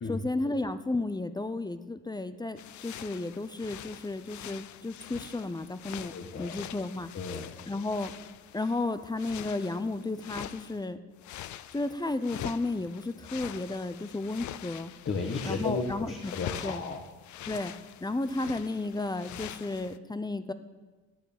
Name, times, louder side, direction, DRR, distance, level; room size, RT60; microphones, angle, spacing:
voice 1, 0.1-6.1 6.4-7.1 7.7-8.1 8.5-11.0 11.7-14.9 15.5-16.3 16.6-16.8 17.5-17.7 18.0-20.5, left 2 dB, 15° left, 11 dB, 0.7 m, -33 dB
sound 1, 2.6-10.9 11.2-20.0, left 12 dB, 70° left, 0.6 m, -44 dB
voice 2, 5.8-6.6 7.1-7.5 15.0-17.0, left 4 dB, 45° left, 1 dB, 1.7 m, -34 dB
12.0 x 9.1 x 8.9 m, 1.3 s
cardioid pair, 90°, 30 cm